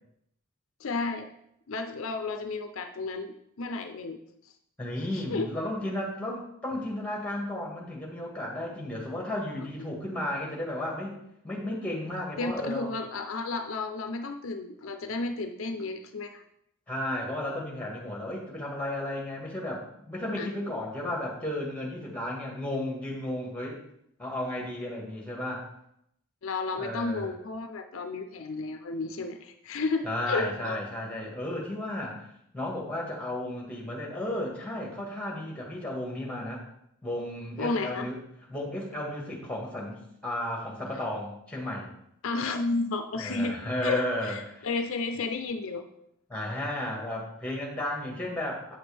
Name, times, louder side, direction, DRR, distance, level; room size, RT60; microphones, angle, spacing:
voice 1, 0.8-1.3 1.7-4.2 5.1-5.5 9.8-9.9 12.4-16.4 20.4-20.5 26.4-30.8 37.6-38.1 42.2-45.8, left 3 dB, 70° left, 7 dB, 0.5 m, -32 dB
voice 2, 4.8-12.9 16.9-23.8 24.2-25.7 26.8-27.3 30.0-32.2 32.5-36.6 37.0-38.2 38.5-41.9 43.2-44.7 46.3-48.8, left 1 dB, 5° left, -1 dB, 1.6 m, -33 dB
8.0 x 6.1 x 3.4 m, 0.75 s
head